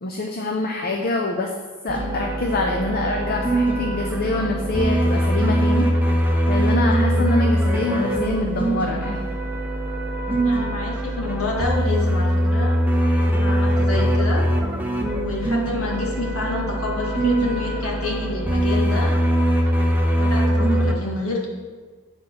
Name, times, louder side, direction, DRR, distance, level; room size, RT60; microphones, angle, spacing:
voice 1, 0.0-1.5 1.8-5.9 6.5-9.2, left 2 dB, 45° left, 2 dB, 0.6 m, -25 dB
sound 1, 1.9-20.9, right 1 dB, 10° right, 0.6 m, -22 dB
voice 2, 10.4-12.7 13.3-14.4 15.2-19.1 19.6-19.8 20.1-21.5, left 3 dB, 75° left, -3 dB, 1.9 m, -28 dB
8.7 x 4.4 x 6.0 m, 1.5 s
head